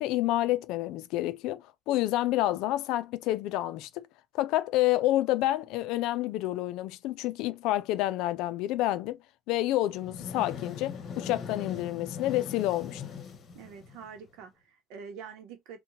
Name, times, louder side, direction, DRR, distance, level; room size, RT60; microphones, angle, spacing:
voice 1, 0.0-4.1 4.3-9.2 9.5-13.0, left 15 dB, 80° left, 0.4 m, -29 dB
sound 1, 9.8-14.4, left 6 dB, 50° left, 0.9 m, -41 dB
voice 2, 13.5-15.8, right 6 dB, 85° right, 0.8 m, -45 dB
2.8 x 2.2 x 2.7 m
cardioid pair, 105°, 0 cm